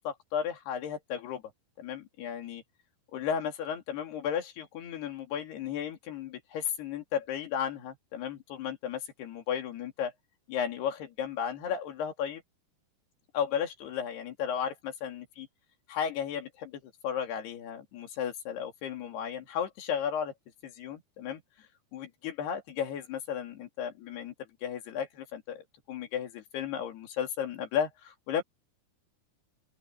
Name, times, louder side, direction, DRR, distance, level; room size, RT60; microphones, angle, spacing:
voice 1, 0.0-1.4 1.8-2.6 3.1-10.1 10.5-12.4 13.3-15.5 15.9-20.3 20.6-24.3 24.6-25.6 25.9-28.4, left 8 dB, 85° left, 4.6 m, -34 dB
open air
omnidirectional pair, 4.5 m